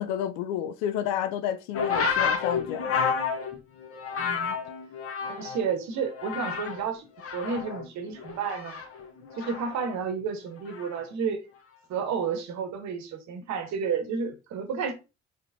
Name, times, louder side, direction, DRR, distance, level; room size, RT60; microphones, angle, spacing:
voice 1, 0.0-2.9, left 10 dB, 70° left, 0.5 m, -30 dB
sound 1, 1.7-5.7 6.0-6.9 7.2-9.8 10.7-11.0, left 6 dB, 45° left, 1.1 m, -30 dB
voice 2, 4.2-4.6 5.2-8.8 9.3-11.4 11.9-14.9, right 6 dB, 60° right, 1.0 m, -31 dB
3.8 x 3.4 x 2.6 m
hypercardioid pair, 45°, 31 cm